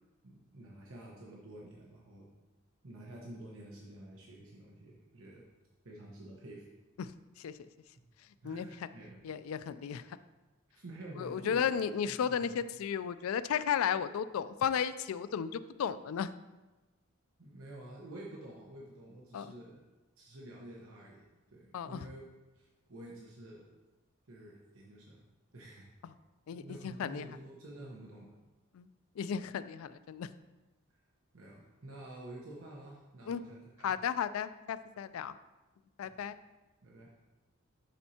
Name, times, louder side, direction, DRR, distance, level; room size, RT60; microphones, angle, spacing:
voice 1, 0.2-2.3 2.8-5.4 5.8-6.7 7.9-8.0 8.4-9.2 10.7-11.7 12.0-12.6 17.4-19.8 20.2-22.3 22.5-23.6 24.3-25.2 25.5-25.9 26.5-28.3 31.3-34.0 36.0-36.2 36.8-37.1, right 1 dB, 80° right, -3 dB, 1.1 m, -49 dB
voice 2, 9.2-10.2 11.2-16.3 19.3-19.5 21.7-22.1 26.0-26.1 26.5-27.3 28.7-28.9 29.2-30.3 33.3-33.4 33.8-35.3 36.0-36.4, left 7 dB, 85° left, 13 dB, 0.3 m, -34 dB
11.5 x 4.3 x 2.8 m, 1.1 s
head